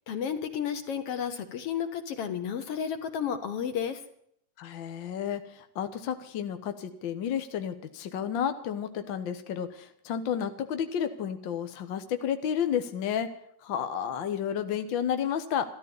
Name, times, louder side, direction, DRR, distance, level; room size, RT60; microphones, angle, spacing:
voice 1, 0.1-4.0, left 8 dB, 55° left, 9 dB, 2.0 m, -32 dB
voice 2, 4.6-13.3 13.6-15.7, left 8 dB, 75° left, 8 dB, 1.1 m, -31 dB
13.5 x 13.5 x 7.0 m, 0.69 s
omnidirectional pair, 3.8 m